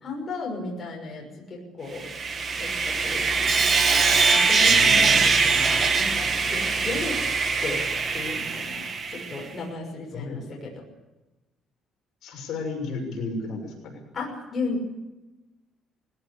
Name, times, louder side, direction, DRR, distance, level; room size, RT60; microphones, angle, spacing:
voice 1, 0.0-2.1 2.6-3.3 4.3-7.2 7.6-7.8 8.1-10.7 14.1-15.0, left 3 dB, 25° left, -2 dB, 6.3 m, -34 dB
Sawing, 2.0-9.4, right 4 dB, 30° right, 1.9 m, -22 dB
voice 2, 4.6-5.6 10.1-10.4 12.2-14.0, left 3 dB, 55° left, 1 dB, 6.5 m, -34 dB
20.5 x 17.5 x 8.6 m, 1.1 s
cardioid pair, 165°, 0 cm